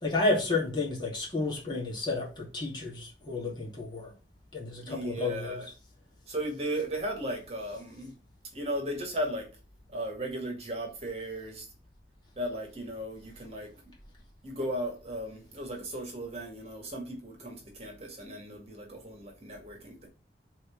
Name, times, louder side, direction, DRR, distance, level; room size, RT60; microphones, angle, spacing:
voice 1, 0.0-4.1 4.5-5.6, left 3 dB, 25° left, 2.6 m, -31 dB
voice 2, 4.8-5.7 6.3-8.2 8.5-9.5 9.9-11.7 12.4-13.9 14.4-20.1, right 1 dB, 35° right, 2.1 m, -36 dB
6.3 x 4.4 x 5.9 m
head